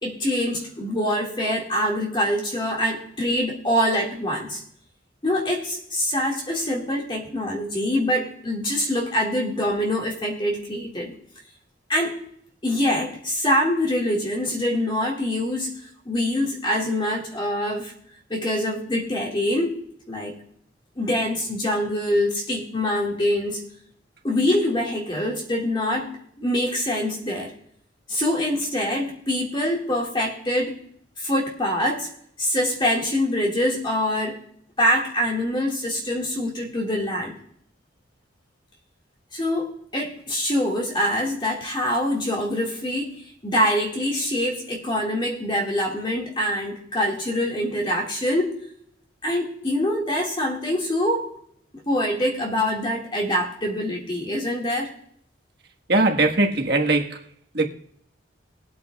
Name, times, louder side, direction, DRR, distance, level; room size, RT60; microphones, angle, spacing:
voice 1, 0.0-4.6 5.2-11.2 11.9-12.2 12.6-17.9 18.3-19.8 20.1-20.4 21.0-23.6 24.2-27.5 28.1-30.8 31.2-32.1 32.4-34.4 34.8-37.4 39.3-48.6 49.2-51.3 51.9-54.9, left 1 dB, 25° left, 1.9 m, -24 dB
voice 2, 55.9-57.2 57.5-57.7, right 2 dB, 55° right, 1.4 m, -20 dB
21.5 x 8.5 x 2.3 m
head